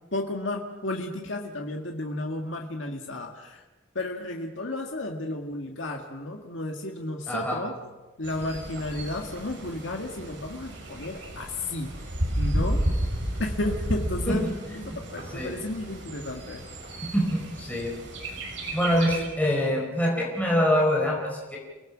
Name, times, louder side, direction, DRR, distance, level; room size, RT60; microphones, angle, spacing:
voice 1, 0.1-3.6 4.0-7.7 8.2-11.9 12.4-12.8 13.4-14.5 14.9-16.6, left 2 dB, 75° left, 2 dB, 1.9 m, -32 dB
voice 2, 7.3-7.6 14.3-14.4 14.7-14.8 15.3-15.5 17.1-17.9 18.7-21.6, equal, 10° left, -3 dB, 4.8 m, -25 dB
Bird, 8.2-19.3, right 1 dB, 65° right, 6.3 m, -32 dB
30.0 x 18.5 x 6.3 m, 1.2 s
head